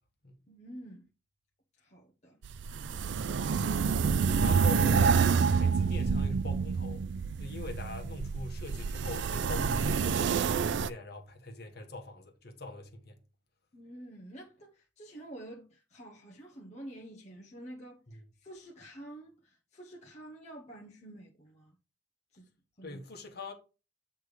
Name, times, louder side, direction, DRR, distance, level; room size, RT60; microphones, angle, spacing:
voice 1, 0.5-1.1 1.8-2.4 4.2-4.6 13.7-21.8 22.3-22.5 22.8-23.0, right 1 dB, 40° left, 1.0 m, -49 dB
sound 1, 2.4-10.9, right 5 dB, 70° right, 0.4 m, -28 dB
voice 2, 4.4-7.0 7.4-13.2 22.8-23.5, left 2 dB, 60° left, 1.4 m, -43 dB
8.1 x 3.4 x 4.9 m
head